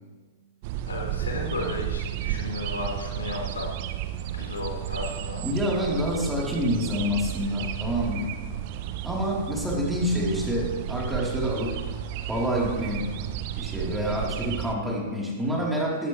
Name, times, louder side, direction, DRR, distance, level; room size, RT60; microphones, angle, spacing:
sound 1, 0.6-14.8, right 11 dB, 45° right, 1.0 m, -33 dB
voice 1, 0.9-3.7 4.3-5.4, left 2 dB, 75° left, -1 dB, 4.6 m, -34 dB
voice 2, 5.4-8.3 9.0-11.8 12.3-13.0 13.6-16.1, equal, 5° right, -4 dB, 3.9 m, -27 dB
18.0 x 16.5 x 3.4 m, 1.4 s
figure-of-eight pair, 105°, 0 cm